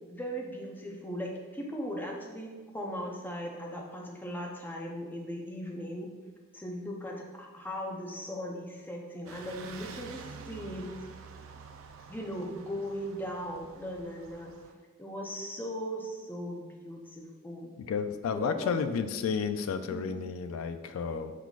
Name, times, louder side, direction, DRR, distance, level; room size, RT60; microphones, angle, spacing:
voice 1, 0.1-6.1 6.5-10.9 12.1-14.5 15.0-17.8 18.3-18.7 19.9-20.3, equal, 10° left, -1 dB, 0.5 m, -38 dB
sound 1, 9.3-14.7, right 5 dB, 80° right, 0.4 m, -48 dB
voice 2, 17.8-21.3, left 6 dB, 85° left, 11 dB, 0.3 m, -32 dB
4.6 x 3.9 x 2.3 m, 1.4 s
head